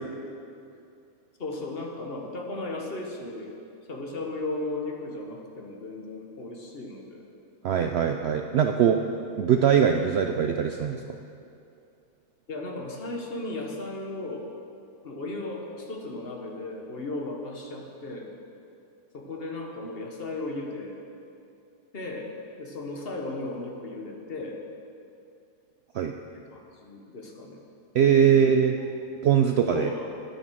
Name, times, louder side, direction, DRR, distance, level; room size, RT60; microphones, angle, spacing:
voice 1, 1.4-3.5 3.9-7.2 12.5-14.5 15.0-18.3 19.1-21.0 21.9-22.3 22.6-24.6 26.3-27.6 28.2-28.4 28.8-28.9 29.7-30.1, left 2 dB, 40° left, 1 dB, 1.4 m, -35 dB
voice 2, 7.6-9.0 9.4-11.0 25.9-26.1 27.9-28.8 29.2-29.9, right 8 dB, 85° right, 5 dB, 0.5 m, -21 dB
10.0 x 8.9 x 6.2 m, 2.6 s
omnidirectional pair, 1.6 m